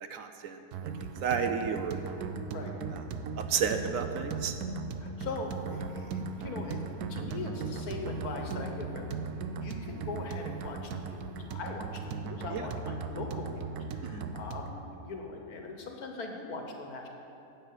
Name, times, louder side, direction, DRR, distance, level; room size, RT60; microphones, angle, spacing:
voice 1, 0.1-0.6 1.2-2.2 3.4-4.5 12.5-12.6 14.0-14.2, right 6 dB, 70° right, 8 dB, 0.9 m, -31 dB
sound 1, 0.7-14.7, right 4 dB, 85° right, 1.2 m, -38 dB
voice 2, 5.0-17.1, left 3 dB, 75° left, 3 dB, 1.7 m, -41 dB
10.0 x 8.2 x 6.7 m, 2.7 s
omnidirectional pair, 1.6 m